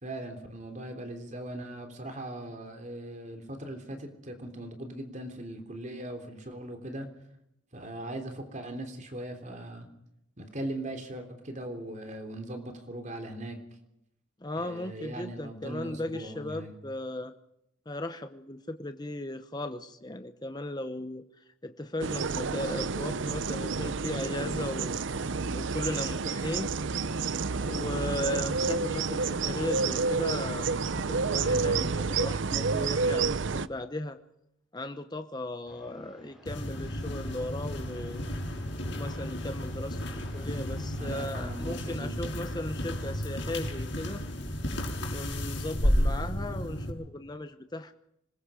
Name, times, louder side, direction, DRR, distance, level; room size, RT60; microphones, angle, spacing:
voice 1, 0.0-7.1 7.7-9.9 10.4-13.6 14.5-16.7 27.5-28.0 40.9-42.4, right 1 dB, 40° right, 5 dB, 3.4 m, -40 dB
voice 2, 14.4-17.3 17.9-21.2 21.6-24.9 25.5-26.7 27.6-34.2 34.7-38.2 39.0-44.2 45.1-47.9, left 1 dB, 20° left, 8 dB, 0.9 m, -37 dB
sound 1, 22.0-33.7, right 4 dB, 70° right, 0.7 m, -29 dB
sound 2, 35.7-41.9, equal, 5° right, 7.3 m, -55 dB
sound 3, 36.5-46.9, equal, 60° left, 6.1 m, -32 dB
26.5 x 21.0 x 5.1 m, 0.79 s
head